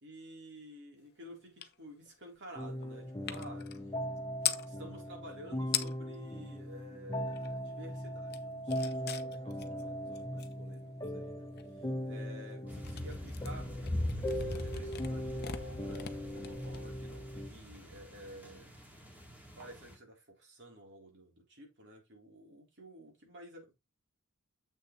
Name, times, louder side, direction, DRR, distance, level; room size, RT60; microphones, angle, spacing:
voice 1, 0.0-3.7 4.7-13.7 14.1-18.7 19.6-23.7, equal, 55° right, 3.6 m, -52 dB
sound 1, 1.6-1.8 2.0-4.7 5.4-5.5 5.6-6.2 6.6-7.7 8.0-17.3, left 11 dB, 45° left, 0.8 m, -42 dB
sound 2, 2.5-17.5, equal, 15° left, 1.2 m, -39 dB
sound 3, 12.7-19.9, left 1 dB, 10° right, 2.2 m, -42 dB
7.8 x 6.4 x 3.1 m
head